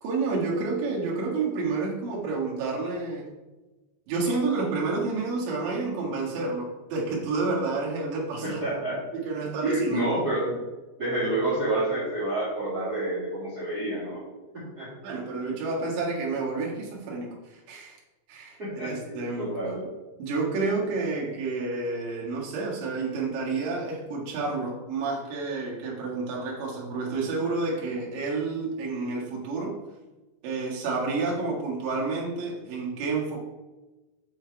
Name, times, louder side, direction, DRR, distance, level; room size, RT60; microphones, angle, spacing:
voice 1, 0.0-3.3 4.1-8.6 9.1-10.2 15.0-18.0 18.3-19.6 20.2-29.8 30.4-33.4, right 3 dB, 75° right, -4 dB, 3.9 m, -29 dB
voice 2, 8.4-9.0 9.6-10.5 11.0-14.2 14.5-14.9 18.6-19.8, right 1 dB, 40° right, -9 dB, 1.4 m, -28 dB
8.7 x 4.5 x 4.6 m, 1.1 s
omnidirectional pair, 5.3 m